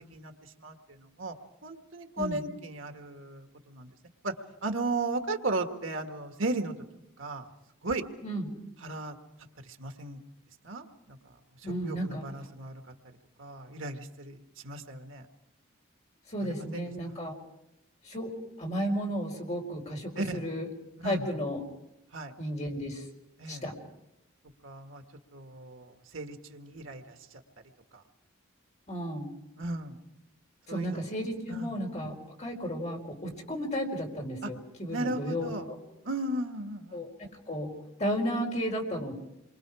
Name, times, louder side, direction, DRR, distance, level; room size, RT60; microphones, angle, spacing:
voice 1, 1.6-3.9 4.2-4.3 4.6-6.7 7.2-7.4 7.8-8.0 8.8-9.1 9.8-10.2 10.6-11.2 11.8-12.8 13.4-14.4 14.6-15.2 16.7-16.8 20.2-20.4 21.0-21.3 22.1-22.3 23.4-23.6 24.6-25.0 25.3-27.1 29.6-30.0 30.7-31.0 31.5-31.7 34.4-34.5 34.9-35.6 36.0-37.0, right 2 dB, 70° right, 5 dB, 1.7 m, -35 dB
voice 2, 11.6-12.2 16.3-17.3 18.0-18.3 18.6-20.7 21.0-21.6 22.4-23.1 23.5-23.7 28.9-29.3 30.7-32.1 32.4-35.8 36.9-37.7 38.0-39.1, equal, 35° left, 1 dB, 4.5 m, -33 dB
28.5 x 23.5 x 4.9 m, 0.87 s
head